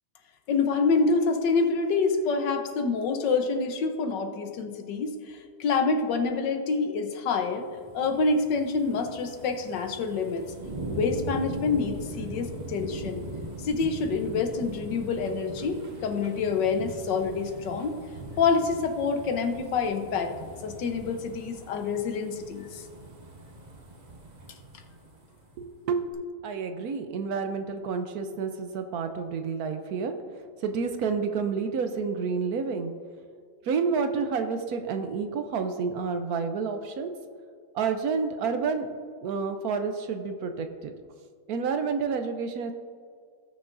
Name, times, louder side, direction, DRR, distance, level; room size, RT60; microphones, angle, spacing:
voice 1, 0.5-7.7 7.9-10.4 10.9-13.2 13.6-18.0 18.4-20.3 20.6-22.9, left 4 dB, 85° left, 5 dB, 1.6 m, -27 dB
sound 1, 7.5-25.7 26.1-26.2, right 2 dB, 30° right, 0.9 m, -41 dB
voice 2, 25.6-26.1 26.4-30.1 30.6-32.9 33.6-37.1 37.7-38.9 39.2-40.9 41.5-42.7, right 5 dB, 70° right, 7 dB, 1.1 m, -29 dB
18.0 x 6.3 x 2.6 m, 2.1 s
omnidirectional pair, 1.9 m